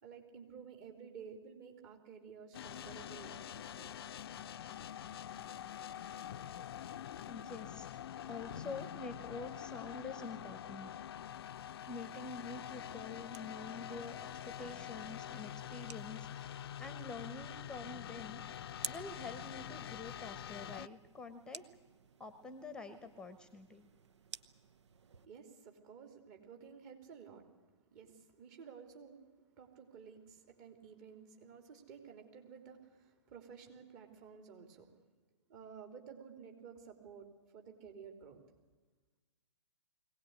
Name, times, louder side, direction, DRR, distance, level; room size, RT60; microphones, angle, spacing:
voice 1, 0.0-3.9 25.2-27.5 27.9-29.2 29.6-34.9 35.5-38.4, right 6 dB, 35° right, 5 dB, 3.6 m, -53 dB
sound 1, 2.5-20.9, left 10 dB, 50° left, 0.6 m, -46 dB
voice 2, 7.3-7.9 8.2-10.9 11.9-16.5 16.8-18.4 18.9-21.7 22.2-23.9, left 3 dB, 5° left, 12 dB, 1.1 m, -47 dB
sound 2, 12.9-25.3, right 6 dB, 65° right, 0.9 m, -54 dB
22.0 x 18.0 x 9.7 m, 1.3 s
figure-of-eight pair, 120°, 16 cm